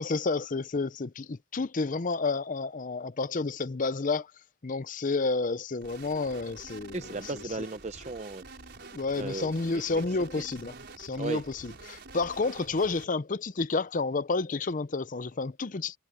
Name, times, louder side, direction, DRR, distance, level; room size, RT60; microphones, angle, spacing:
voice 1, 0.0-4.3 4.6-7.4 8.9-16.0, left 3 dB, 35° left, 0.6 m, -30 dB
sound 1, 5.8-13.1, right 3 dB, 50° right, 5.5 m, -48 dB
voice 2, 6.9-8.4 9.2-9.5 10.4-10.5 11.2-11.4, right 3 dB, 30° right, 0.7 m, -35 dB
head